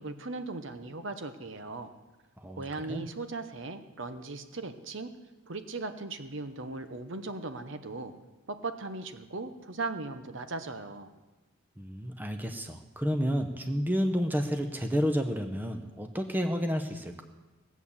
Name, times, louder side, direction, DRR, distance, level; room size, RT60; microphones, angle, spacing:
voice 1, 0.0-1.9 2.6-5.1 5.5-8.1 8.5-11.1, right 3 dB, 60° right, 9 dB, 1.0 m, -38 dB
voice 2, 11.8-17.2, equal, 10° right, 6 dB, 0.8 m, -30 dB
17.0 x 8.3 x 7.2 m, 1.1 s
head